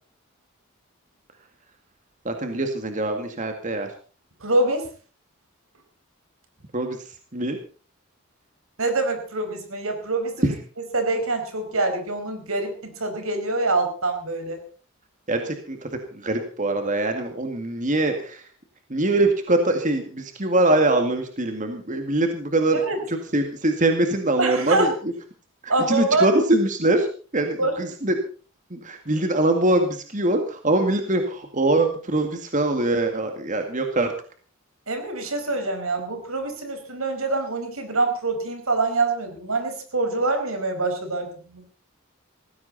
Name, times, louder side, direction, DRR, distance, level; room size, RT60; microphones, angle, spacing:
voice 1, 2.3-3.9 6.7-7.0 7.3-7.6 10.4-10.5 15.3-18.4 18.9-22.8 23.1-24.9 25.6-27.1 27.3-28.1 28.7-34.1, right 2 dB, 35° right, 5 dB, 2.1 m, -23 dB
voice 2, 4.4-4.9 8.8-10.5 10.9-14.6 22.7-23.0 24.4-24.9 25.7-26.3 27.6-27.8 34.9-41.6, right 2 dB, 85° right, 6 dB, 5.0 m, -25 dB
18.5 x 16.0 x 4.2 m, 0.39 s
head